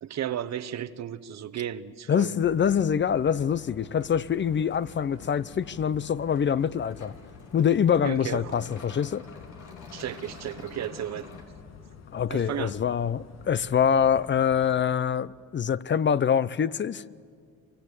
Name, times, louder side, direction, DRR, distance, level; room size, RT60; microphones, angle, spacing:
voice 1, 0.0-2.4 8.0-8.6 9.9-11.3 12.3-12.8, right 10 dB, 60° right, 1.0 m, -34 dB
voice 2, 2.1-7.1 7.5-9.2 12.1-17.0, left 8 dB, 40° left, 0.6 m, -25 dB
sound 1, 2.4-14.9, left 7 dB, 60° left, 1.3 m, -49 dB
sound 2, 3.3-11.4, left 4 dB, 85° left, 3.6 m, -50 dB
24.5 x 24.0 x 8.3 m
cardioid pair, 90°, 30 cm